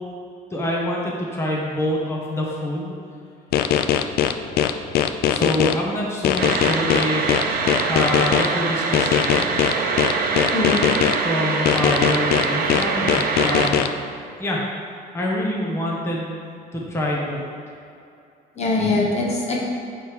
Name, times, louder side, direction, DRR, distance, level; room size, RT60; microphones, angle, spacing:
voice 1, 0.5-2.9 5.3-7.3 7.9-9.5 11.2-13.9 14.4-14.6 15.1-16.4 16.7-17.4, left 1 dB, 15° left, -4 dB, 1.0 m, -26 dB
sound 1, 3.5-5.7 6.2-8.5 8.9-11.2 11.7-13.9, left 10 dB, 65° left, 0.4 m, -20 dB
sound 2, 6.4-13.7, right 4 dB, 60° right, 0.7 m, -24 dB
voice 2, 10.5-10.9 18.6-19.6, left 3 dB, 40° left, -2 dB, 1.1 m, -22 dB
7.6 x 3.3 x 5.2 m, 2.5 s
cardioid pair, 110°, 17 cm